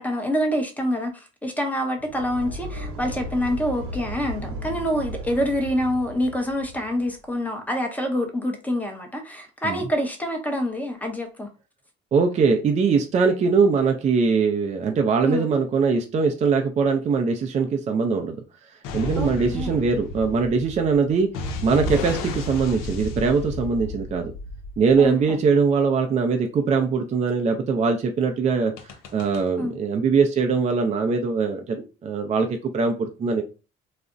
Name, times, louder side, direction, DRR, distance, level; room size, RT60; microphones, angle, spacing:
voice 1, 0.0-11.5 15.2-15.5 19.2-19.8 25.0-25.4 29.6-29.8, equal, 5° left, 4 dB, 0.7 m, -26 dB
sound 1, 2.0-7.2, right 1 dB, 75° right, 0.7 m, -36 dB
voice 2, 12.1-18.4 18.9-21.3 21.6-24.3 24.8-28.7 29.1-33.4, right 5 dB, 35° right, 4 dB, 0.4 m, -22 dB
sound 2, 18.8-25.2 28.8-29.4, left 2 dB, 90° left, 0.5 m, -32 dB
2.4 x 2.0 x 3.6 m, 0.32 s
cardioid pair, 100°, 21 cm